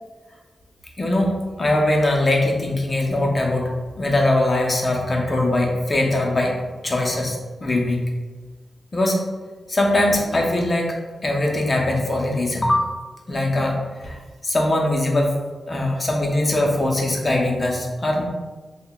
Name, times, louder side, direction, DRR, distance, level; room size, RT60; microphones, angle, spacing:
voice 1, 1.0-6.5 6.8-8.1 8.9-9.2 9.7-10.9 11.2-12.9 13.3-14.2 14.4-15.3 15.7-18.2, left 1 dB, 30° left, 0 dB, 0.6 m, -21 dB
5.4 x 2.1 x 2.3 m, 1.3 s
wide cardioid pair, 125°, 0 cm